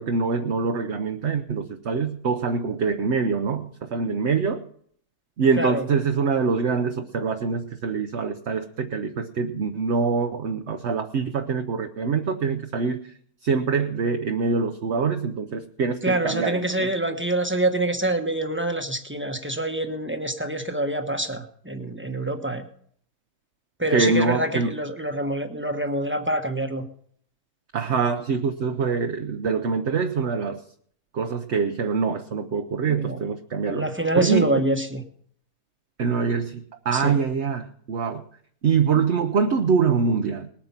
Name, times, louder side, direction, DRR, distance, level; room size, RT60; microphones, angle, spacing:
voice 1, 0.0-4.6 5.4-13.0 13.4-16.9 23.9-24.7 27.7-30.6 31.1-34.5 36.0-38.2 38.6-40.5, right 5 dB, 55° right, 5 dB, 1.0 m, -24 dB
voice 2, 16.0-22.6 23.8-26.8 32.9-33.2 33.7-35.0 36.9-37.1, right 1 dB, 10° right, 5 dB, 1.0 m, -26 dB
20.0 x 8.8 x 5.8 m, 0.62 s
omnidirectional pair, 1.6 m